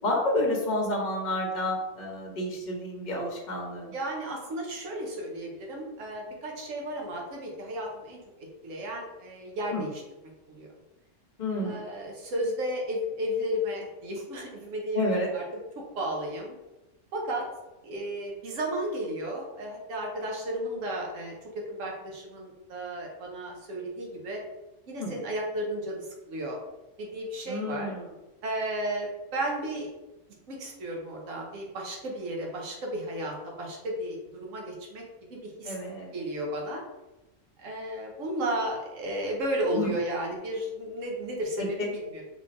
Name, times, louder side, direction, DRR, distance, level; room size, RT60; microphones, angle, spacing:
voice 1, 0.0-3.9 9.7-9.8 11.4-11.8 14.9-15.3 25.0-25.1 27.5-28.1 35.6-36.1 39.7-39.9 41.6-41.9, left 1 dB, 40° left, -1 dB, 0.8 m, -30 dB
voice 2, 3.9-10.0 10.5-10.7 11.6-16.5 17.1-17.5 17.8-21.3 21.7-24.4 24.9-26.6 27.0-27.9 28.4-29.9 30.5-35.0 35.3-35.8 36.1-36.8 37.6-42.2, right 1 dB, 85° right, -1 dB, 1.2 m, -33 dB
3.8 x 3.1 x 2.5 m, 1.0 s
omnidirectional pair, 1.3 m